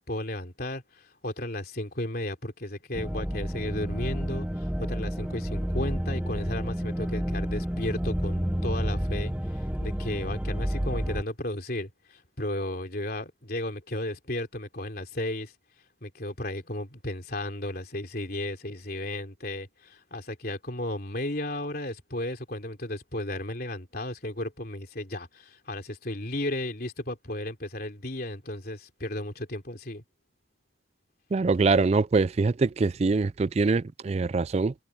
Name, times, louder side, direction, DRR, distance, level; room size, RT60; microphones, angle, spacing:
voice 1, 0.0-15.5 16.0-30.0, left 1 dB, 50° left, 3.5 m, -34 dB
sound 1, 2.9-11.2, equal, 5° right, 1.0 m, -30 dB
voice 2, 31.3-34.7, right 3 dB, 35° right, 0.3 m, -24 dB
head